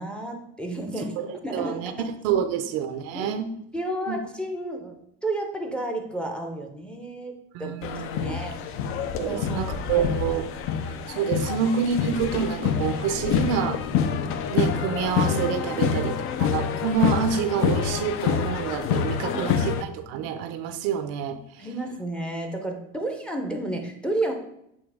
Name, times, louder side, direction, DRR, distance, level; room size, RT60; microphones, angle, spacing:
voice 1, 0.0-1.1 1.4-1.9 3.1-3.3 3.7-5.0 5.2-7.3 7.6-7.7 8.1-8.5 9.2-10.1 15.8-16.1 19.3-19.7 21.6-24.3, right 1 dB, 5° left, 3 dB, 0.6 m, -31 dB
voice 2, 1.0-1.9 2.2-3.5 4.1-4.2 7.5-8.4 9.2-10.5 10.8-13.8 14.5-21.7, right 7 dB, 55° right, 10 dB, 0.6 m, -28 dB
sound 1, 7.8-19.8, left 7 dB, 45° left, 0.5 m, -27 dB
7.1 x 2.8 x 4.8 m, 0.77 s
cardioid pair, 145°, 30 cm